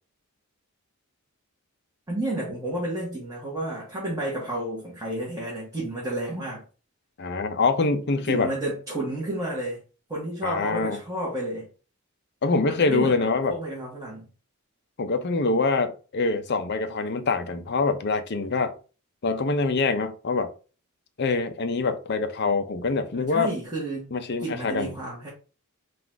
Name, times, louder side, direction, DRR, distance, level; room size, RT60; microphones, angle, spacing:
voice 1, 2.1-6.6 8.3-9.8 10.1-11.7 12.7-14.3 23.1-24.1 24.4-25.3, right 1 dB, 15° right, 1.4 m, -31 dB
voice 2, 7.2-8.5 10.4-11.0 12.4-13.6 15.0-18.7 19.2-20.5 21.2-23.5 24.1-24.9, left 3 dB, 50° left, 0.6 m, -25 dB
3.9 x 2.5 x 4.5 m
head